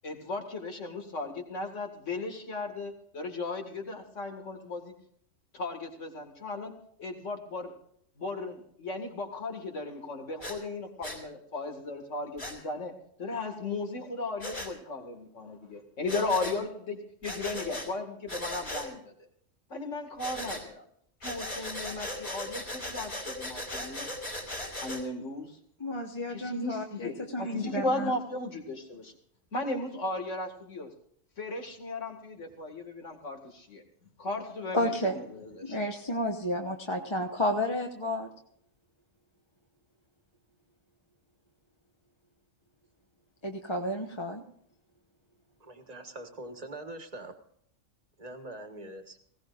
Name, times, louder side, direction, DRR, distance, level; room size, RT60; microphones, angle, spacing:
voice 1, 0.0-4.9 5.5-6.7 7.0-7.7 8.2-12.9 13.2-19.1 19.7-20.8 21.2-24.1 24.8-25.6 26.3-29.1 29.5-30.9 31.4-33.8 34.2-35.8, left 2 dB, 70° left, 2.5 m, -36 dB
Breathing, 10.4-10.6 11.0-11.2 12.4-12.6 14.4-14.7 16.1-16.6 17.2-17.9 18.3-18.9 20.2-20.6 21.2-25.0, left 1 dB, 50° left, 4.7 m, -38 dB
voice 2, 25.8-28.1 34.7-35.2 35.6-38.3 43.4-44.4, left 1 dB, 25° left, 1.1 m, -31 dB
voice 3, 45.6-47.3 48.2-49.2, right 1 dB, 30° right, 1.6 m, -43 dB
20.0 x 17.0 x 2.6 m
omnidirectional pair, 1.3 m